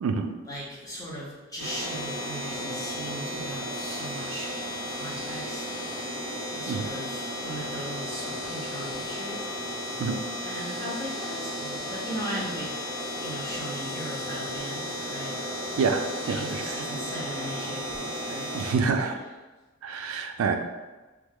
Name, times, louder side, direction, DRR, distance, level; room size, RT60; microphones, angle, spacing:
voice 1, 0.4-4.5 4.8-5.6 6.6-9.5 10.4-12.8 13.2-15.4 16.2-19.2, equal, 15° left, -6 dB, 0.7 m, -38 dB
sound 1, 1.6-18.7, left 1 dB, 75° left, 1.1 m, -34 dB
voice 2, 15.8-16.6 18.5-19.1 19.8-20.6, right 5 dB, 80° right, 6 dB, 0.3 m, -27 dB
3.0 x 2.0 x 3.5 m, 1.2 s
head